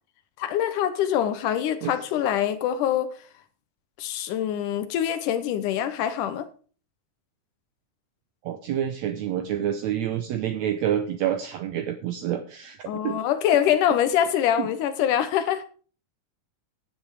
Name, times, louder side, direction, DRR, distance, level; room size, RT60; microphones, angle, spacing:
voice 1, 0.4-3.1 4.0-6.5 12.9-15.6, left 10 dB, 85° left, 2.4 m, -24 dB
voice 2, 8.4-12.8 13.0-13.2 14.6-14.7, right 10 dB, 70° right, 2.0 m, -28 dB
14.5 x 7.5 x 4.8 m
omnidirectional pair, 3.5 m